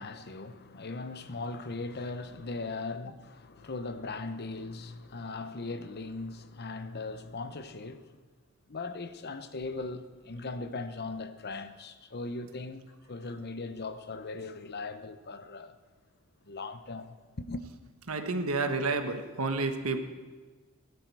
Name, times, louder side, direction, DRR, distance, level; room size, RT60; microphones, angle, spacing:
voice 1, 0.0-8.2 8.7-12.8 13.1-15.8 16.4-17.6, left 3 dB, 50° left, 0.9 m, -39 dB
voice 2, 18.1-20.0, right 3 dB, 85° right, 1.3 m, -30 dB
17.5 x 11.5 x 4.8 m
head